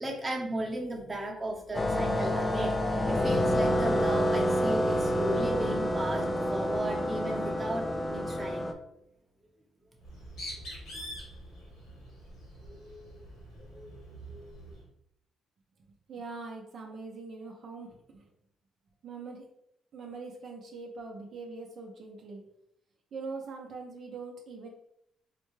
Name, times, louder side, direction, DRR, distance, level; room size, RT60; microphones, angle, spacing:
voice 1, 0.0-8.7 10.9-11.0, right 1 dB, 20° right, -1 dB, 0.9 m, -35 dB
sound 1, 1.7-8.7, equal, 20° left, 0.4 m, -28 dB
Bird, 10.0-14.8, equal, 80° left, 1.5 m, -45 dB
voice 2, 16.1-18.2 19.0-19.5 19.9-22.4 23.1-24.7, right 4 dB, 60° right, 0 dB, 0.6 m, -42 dB
4.1 x 2.2 x 3.1 m, 0.78 s
cardioid pair, 90°, 0 cm